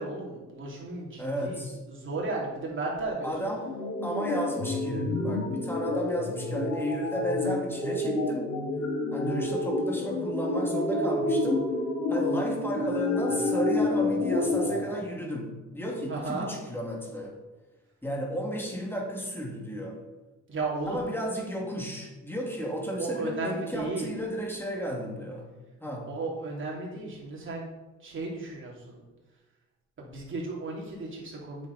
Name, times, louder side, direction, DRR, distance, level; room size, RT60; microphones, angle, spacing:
voice 1, 0.0-1.6 1.9-3.5 16.1-16.5 20.5-21.0 23.0-24.1 26.1-27.6 28.0-29.0 30.0-31.7, right 3 dB, 40° right, -4 dB, 3.0 m, -34 dB
voice 2, 1.2-1.8 3.2-3.7 4.0-8.6 9.1-11.7 12.1-17.4 18.0-20.0 20.8-25.5 25.8-26.1, equal, 5° left, -1 dB, 2.3 m, -33 dB
sound 1, 3.7-14.8, left 2 dB, 70° left, 2.1 m, -29 dB
8.5 x 6.6 x 4.1 m, 1.1 s
cardioid pair, 90°, 30 cm